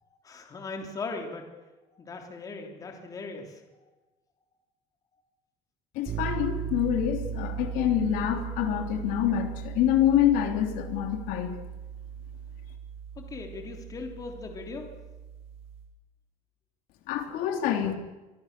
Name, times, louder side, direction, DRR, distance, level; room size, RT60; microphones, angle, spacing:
voice 1, 0.2-1.5 1.9-3.9 13.2-14.9, left 3 dB, 25° left, 3 dB, 3.3 m, -39 dB
voice 2, 5.9-11.6 17.1-17.9, left 10 dB, 75° left, 5 dB, 3.2 m, -26 dB
sound 1, 6.0-15.9, right 8 dB, 45° right, 5.0 m, -38 dB
25.5 x 22.5 x 6.8 m, 1.1 s
cardioid pair, 165°, 14 cm